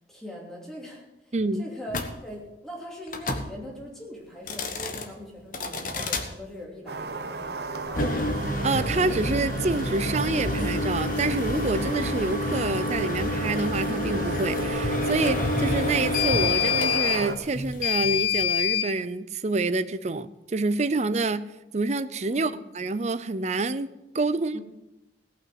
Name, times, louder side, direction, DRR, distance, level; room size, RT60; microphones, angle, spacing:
voice 1, 0.1-8.1 22.3-22.6 24.3-24.6, equal, 5° left, -3 dB, 2.8 m, -41 dB
voice 2, 1.3-1.7 8.6-21.5 21.7-23.9 24.1-24.6, right 3 dB, 40° right, 14 dB, 0.5 m, -27 dB
sound 1, 1.9-2.1 3.1-3.5 4.4-5.1 5.5-6.3 7.8-18.9, left 4 dB, 50° left, 1.3 m, -27 dB
sound 2, 6.9-17.4, right 3 dB, 60° right, 0.9 m, -34 dB
17.5 x 6.0 x 7.8 m, 0.96 s
head